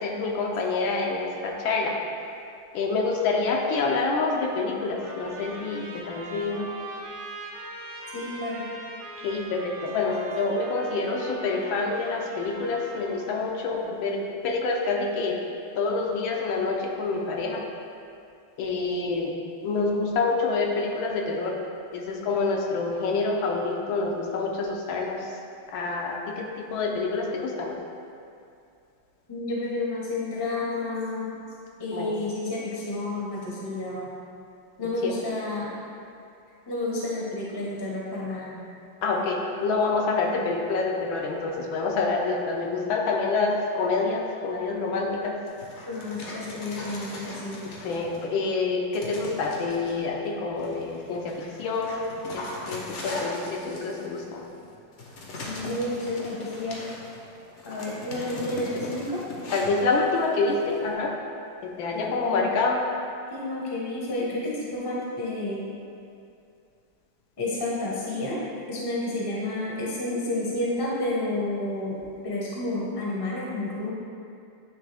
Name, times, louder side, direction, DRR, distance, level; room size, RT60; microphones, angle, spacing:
voice 1, 0.0-2.0 2.7-6.7 9.2-15.4 15.7-17.6 18.6-19.3 19.6-21.5 21.9-25.3 25.7-27.8 31.9-32.2 35.0-35.1 39.0-45.4 47.8-54.4 59.5-61.1 61.6-62.8, left 3 dB, 80° left, 0 dB, 1.5 m, -27 dB
Trumpet, 4.5-13.4, right 2 dB, 80° right, 1.9 m, -41 dB
voice 2, 8.1-8.6 29.3-31.3 31.8-34.1 34.8-35.7 36.7-38.6 45.9-47.6 55.4-56.8 57.6-59.2 61.9-62.4 63.3-65.6 67.4-68.4 68.7-72.0 72.2-73.9, left 2 dB, 25° left, -5 dB, 0.6 m, -30 dB
Dog, 45.5-48.4 48.9-50.0 50.6-60.9, left 2 dB, 55° left, 0.8 m, -39 dB
8.7 x 3.2 x 3.4 m, 2.5 s
omnidirectional pair, 2.1 m